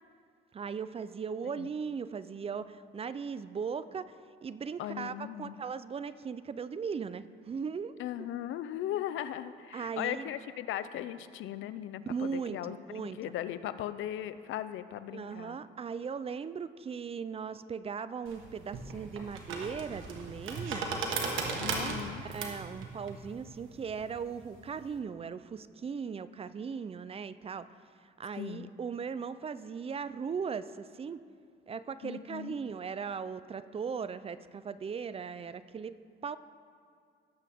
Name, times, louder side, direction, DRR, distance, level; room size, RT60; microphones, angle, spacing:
voice 1, 0.5-4.2 4.4-8.0 9.7-10.3 12.1-13.3 15.1-20.9 21.6-27.7 28.2-31.2 31.7-35.9 36.2-36.4, right 6 dB, 30° right, 15 dB, 0.4 m, -38 dB
voice 2, 4.8-5.6 8.0-15.6 21.6-22.2 28.4-28.7 32.0-32.6, left 11 dB, 80° left, 13 dB, 0.5 m, -38 dB
sound 1, 18.3-24.9, right 4 dB, 85° right, 1.4 m, -37 dB
17.5 x 7.5 x 3.6 m, 2.3 s
cardioid pair, 90°, 20 cm